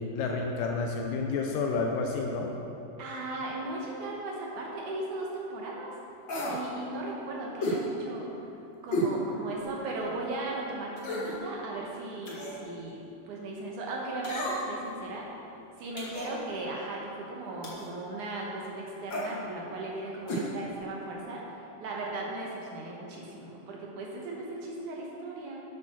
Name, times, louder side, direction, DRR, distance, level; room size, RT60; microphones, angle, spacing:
voice 1, 0.0-2.5, left 4 dB, 75° left, 2 dB, 2.1 m, -30 dB
voice 2, 3.0-5.9 6.5-8.3 8.8-13.0 13.3-15.3 15.8-25.6, right 2 dB, 65° right, -2 dB, 2.3 m, -37 dB
sound 1, 6.3-6.6 7.6-7.8 8.9-9.1 9.6-9.7 11.0-11.4 12.2-12.6 14.2-14.8 16.0-16.3 17.6-17.9 19.1-19.3 20.3-20.5 20.7-20.8, equal, 40° left, 1.7 m, -32 dB
9.2 x 8.3 x 6.0 m, 2.9 s
omnidirectional pair, 4.3 m